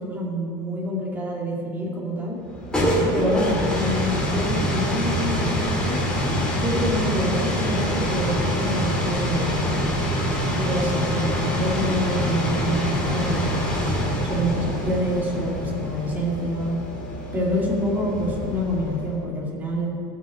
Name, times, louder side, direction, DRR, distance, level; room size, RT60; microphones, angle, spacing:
voice 1, 0.0-2.4 3.1-6.0 6.5-9.7 10.6-13.7 14.2-16.8 17.3-19.9, equal, 15° right, -5 dB, 2.7 m, -27 dB
sound 1, 2.4-19.2, equal, 5° left, 2.0 m, -25 dB
18.5 x 6.2 x 7.7 m, 2.9 s
supercardioid pair, 175°, 14 cm